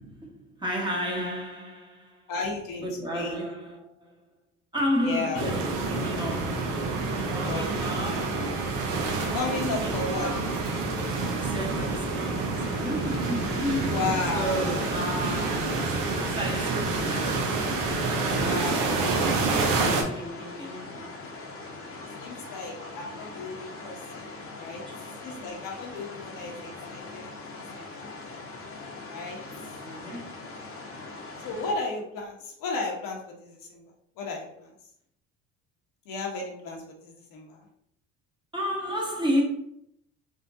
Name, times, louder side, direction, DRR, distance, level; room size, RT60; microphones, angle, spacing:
voice 1, 0.0-2.3 2.8-4.2 4.7-9.3 9.8-11.0 11.3-17.6 18.2-21.2 24.9-25.0 25.3-25.4 29.8-30.7 38.5-39.4, equal, 10° right, 1.1 m, -33 dB
voice 2, 2.3-2.9 3.1-3.4 5.0-5.5 7.4-7.7 8.0-8.2 9.3-10.3 13.9-15.1 18.4-19.2 22.2-24.8 25.2-27.2 27.7-28.1 29.1-29.4 31.4-33.8 34.2-34.7 36.1-37.6, left 3 dB, 60° left, 1.0 m, -34 dB
sound 1, 5.3-20.0, right 3 dB, 70° right, 0.8 m, -28 dB
sound 2, 12.5-31.7, left 3 dB, 35° left, 0.9 m, -41 dB
3.6 x 2.5 x 2.6 m
hypercardioid pair, 65°, 38 cm